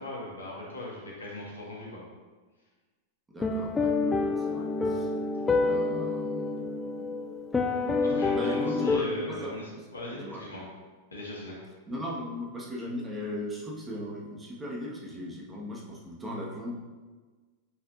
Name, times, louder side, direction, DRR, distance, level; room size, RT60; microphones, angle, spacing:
voice 1, 0.0-2.0 8.0-10.6 11.1-11.6, left 1 dB, 80° left, -5 dB, 1.9 m, -38 dB
voice 2, 3.3-5.1 5.6-7.2 8.3-9.5 10.1-10.4 11.9-16.8, left 1 dB, 15° right, -4 dB, 1.6 m, -38 dB
sound 1, 3.4-9.0, left 3 dB, 15° left, 0.5 m, -28 dB
8.8 x 5.2 x 2.6 m, 1.3 s
figure-of-eight pair, 90°, 0 cm